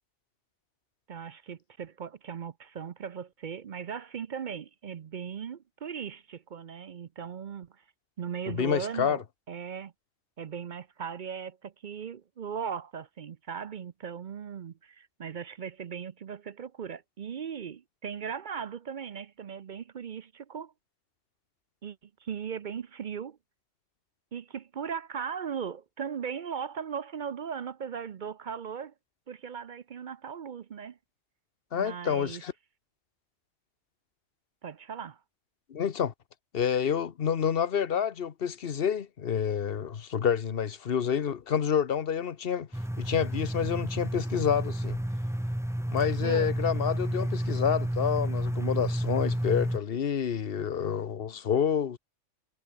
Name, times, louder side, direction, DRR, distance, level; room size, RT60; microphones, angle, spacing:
voice 1, 1.1-7.7 8.2-9.9 10.4-20.7 21.8-23.4 24.3-28.9 29.3-31.0 31.7-32.4 34.6-35.2 46.2-46.5, right 7 dB, 50° right, 0.7 m, -38 dB
voice 2, 8.5-9.2 31.7-32.5 35.7-36.1 36.5-42.7 43.0-45.0 45.9-52.0, left 8 dB, 55° left, 1.1 m, -28 dB
sound 1, 42.7-49.8, equal, 5° right, 0.7 m, -30 dB
omnidirectional pair, 1.2 m